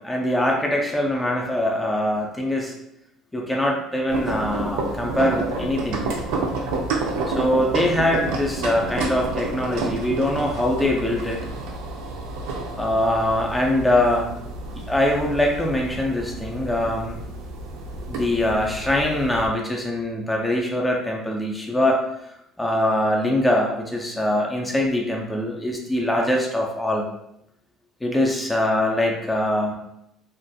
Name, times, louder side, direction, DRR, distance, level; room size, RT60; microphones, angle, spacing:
voice 1, 0.0-2.7 3.3-6.1 7.3-11.4 12.7-14.3 14.7-17.2 18.1-22.0 22.6-27.1 28.0-29.7, left 1 dB, 5° left, -1 dB, 0.3 m, -23 dB
sound 1, 4.1-19.5, right 2 dB, 85° right, 0.4 m, -30 dB
2.4 x 2.3 x 2.5 m, 0.80 s
cardioid pair, 175°, 0 cm